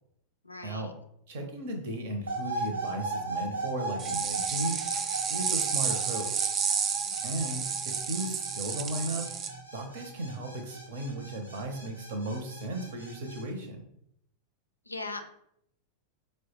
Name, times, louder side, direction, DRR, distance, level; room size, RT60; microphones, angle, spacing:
voice 1, 0.4-0.9 7.0-7.1 14.9-15.2, left 3 dB, 85° left, 6 dB, 0.4 m, -39 dB
voice 2, 1.3-5.0 5.3-6.5 7.2-9.3 9.7-13.8, right 1 dB, 55° right, 5 dB, 0.7 m, -36 dB
sound 1, 2.3-13.4, right 2 dB, 80° right, 1.0 m, -37 dB
sound 2, 4.0-9.5, right 6 dB, 30° right, 0.3 m, -31 dB
4.5 x 2.1 x 3.0 m, 0.73 s
figure-of-eight pair, 90°, 0 cm